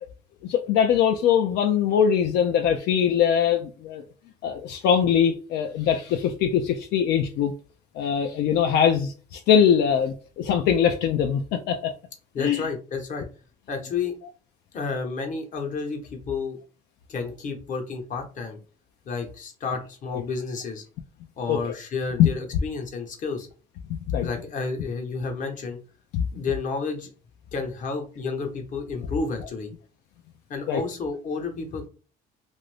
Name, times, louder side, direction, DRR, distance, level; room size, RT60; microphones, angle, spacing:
voice 1, 0.4-4.0 4.4-7.5 8.0-11.9 12.4-12.6 21.5-21.7 22.2-22.3 23.9-24.3 26.1-26.3 30.7-30.8, left 8 dB, 80° left, 0.4 m, -22 dB
voice 2, 12.3-13.3 13.7-14.2 14.7-16.6 17.1-18.6 19.0-20.8 21.4-23.5 24.2-25.8 26.3-27.1 27.5-29.7 30.5-31.9, left 4 dB, 50° left, 1.0 m, -31 dB
2.6 x 2.5 x 3.3 m
cardioid pair, 110°, 17 cm